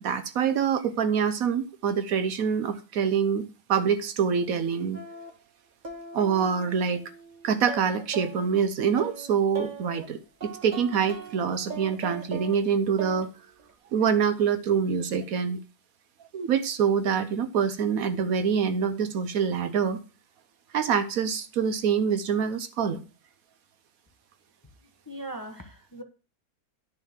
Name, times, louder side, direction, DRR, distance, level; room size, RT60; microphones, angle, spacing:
voice 1, 0.0-5.0 6.1-7.0 7.4-13.3 13.9-15.6 16.3-20.0 20.7-23.0, right 7 dB, 70° right, 1.2 m, -25 dB
sound 1, 4.9-5.3 5.8-8.5 9.0-10.1 10.4-12.6 13.0-13.3 13.6-13.7, right 4 dB, 30° right, 1.4 m, -40 dB
voice 2, 25.1-26.0, right 1 dB, 15° left, 0.9 m, -39 dB
10.0 x 4.2 x 7.3 m
omnidirectional pair, 1.6 m